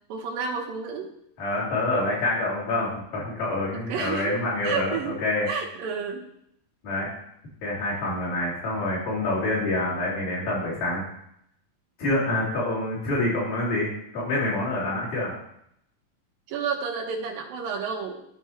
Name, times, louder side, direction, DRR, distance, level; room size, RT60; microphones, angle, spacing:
voice 1, 0.1-1.1 3.9-4.4 4.6-5.2 5.5-6.3 16.5-18.3, right 5 dB, 85° right, 0 dB, 2.9 m, -30 dB
voice 2, 1.4-5.5 6.8-7.1 7.6-11.0 12.0-15.3, left 2 dB, 70° left, -8 dB, 4.5 m, -27 dB
13.5 x 4.8 x 2.9 m, 0.74 s
omnidirectional pair, 4.0 m